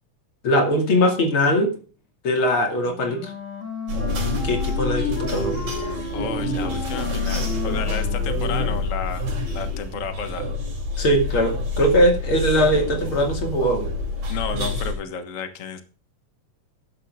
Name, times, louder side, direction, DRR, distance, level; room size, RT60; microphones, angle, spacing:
voice 1, 0.4-1.7 2.2-3.3 4.4-5.6 11.0-13.9, equal, 40° left, 3 dB, 3.0 m, -20 dB
Wind instrument woodwind instrument, 2.8-8.8, left 3 dB, 25° left, 2.2 m, -33 dB
sound 1, 3.9-14.9, left 2 dB, 60° right, 4.9 m, -27 dB
voice 2, 6.1-10.5 14.3-15.8, left 6 dB, 60° left, 8 dB, 0.8 m, -32 dB
13.0 x 10.5 x 3.6 m, 0.38 s
omnidirectional pair, 3.7 m